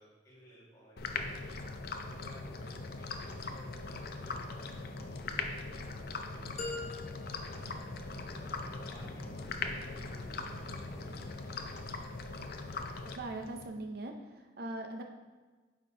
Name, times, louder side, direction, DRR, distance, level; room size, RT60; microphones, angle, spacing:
voice 1, 0.0-1.6 2.1-6.6 7.4-7.9 8.2-11.7, equal, 20° left, -6 dB, 1.9 m, -56 dB
sound 1, 1.0-13.7, left 3 dB, 55° left, 0.5 m, -41 dB
Male speech man speaking / Motorcycle / Idling, 2.8-11.8, equal, 75° left, 2.3 m, -53 dB
sound 2, 6.6-8.6, left 3 dB, 35° left, 1.2 m, -43 dB
voice 2, 13.0-15.0, right 2 dB, 55° right, 4 dB, 0.5 m, -41 dB
9.1 x 5.2 x 2.8 m, 1.3 s
head